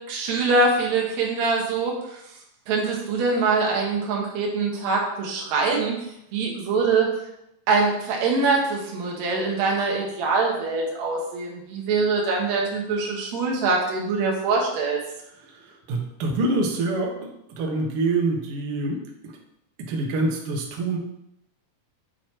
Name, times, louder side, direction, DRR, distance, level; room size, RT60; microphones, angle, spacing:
voice 1, 0.1-1.9 2.7-6.0 6.3-7.1 7.7-15.0, right 3 dB, 60° right, -2 dB, 2.2 m, -23 dB
voice 2, 15.4-19.0 19.2-19.3 19.9-21.0, right 2 dB, 85° right, 0 dB, 1.2 m, -26 dB
8.1 x 3.1 x 4.4 m, 0.81 s
omnidirectional pair, 4.2 m